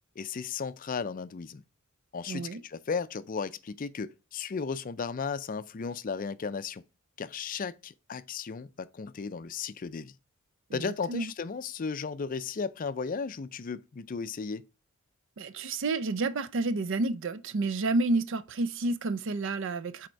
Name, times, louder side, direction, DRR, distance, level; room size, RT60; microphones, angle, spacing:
voice 1, 0.2-1.6 2.1-6.8 7.2-10.1 10.7-14.7, left 5 dB, 40° left, 0.4 m, -35 dB
voice 2, 2.3-2.6 10.8-11.3 15.4-20.1, right 2 dB, 60° right, 0.5 m, -30 dB
7.7 x 4.2 x 4.5 m
head